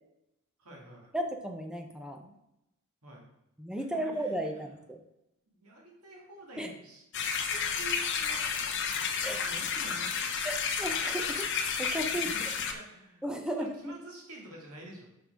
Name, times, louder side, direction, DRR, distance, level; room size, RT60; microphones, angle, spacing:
voice 1, 0.6-1.1 3.0-3.3 3.8-4.7 5.5-8.5 9.3-10.3 12.1-13.2 13.5-15.1, right 2 dB, 85° right, -2 dB, 2.3 m, -49 dB
voice 2, 1.1-2.3 3.6-5.0 6.6-6.7 9.2-9.4 10.4-11.5 11.8-12.3 13.2-13.9, right 1 dB, 5° right, 4 dB, 0.7 m, -35 dB
sound 1, 7.1-12.7, left 6 dB, 55° left, 0.8 m, -31 dB
5.8 x 5.5 x 4.9 m, 0.86 s
head